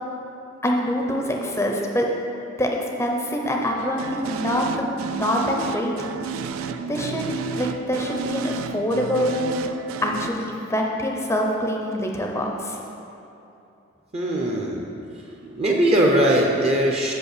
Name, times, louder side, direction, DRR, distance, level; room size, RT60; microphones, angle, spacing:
voice 1, 0.6-2.1 2.6-2.7 3.0-6.1 6.9-7.3 7.5-9.7 10.0-12.8, equal, 15° left, 0 dB, 0.6 m, -25 dB
sound 1, 3.8-10.3, right 5 dB, 85° right, 0.4 m, -31 dB
voice 2, 14.1-14.9 15.4-17.1, right 1 dB, 30° right, 0 dB, 0.6 m, -20 dB
6.8 x 5.3 x 6.7 m, 2.8 s
head